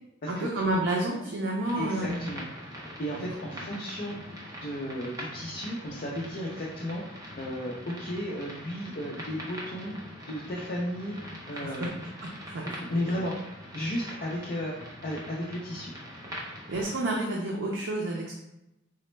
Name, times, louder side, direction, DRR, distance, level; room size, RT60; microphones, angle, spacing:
voice 1, 0.3-2.2 3.5-3.6 11.5-11.9 12.5-12.8 16.7-18.3, right 1 dB, 65° right, -2 dB, 0.5 m, -30 dB
sound 1, 1.6-16.9, equal, 15° right, 0.6 m, -43 dB
voice 2, 1.7-2.5 3.0-4.2 4.6-11.9 12.9-13.3 13.7-15.9, equal, 45° left, -4 dB, 0.5 m, -34 dB
4.0 x 2.1 x 3.1 m, 0.89 s
head